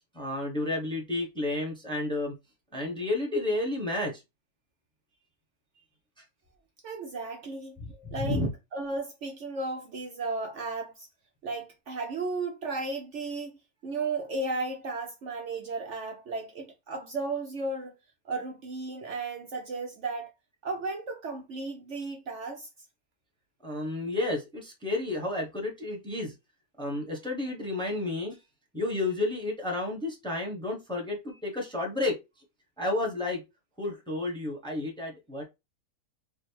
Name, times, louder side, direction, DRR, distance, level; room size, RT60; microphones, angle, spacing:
voice 1, 0.1-2.3 2.7-4.1 7.8-8.5 23.6-26.3 26.8-28.4 28.7-32.1 32.8-33.4 33.8-35.4, left 2 dB, 5° left, 0.9 m, -31 dB
voice 2, 6.8-7.8 8.1-8.4 8.7-11.1 11.4-13.5 13.8-17.9 18.2-20.3 20.6-22.7, right 3 dB, 60° right, 0.9 m, -34 dB
3.4 x 2.4 x 4.4 m
omnidirectional pair, 1.6 m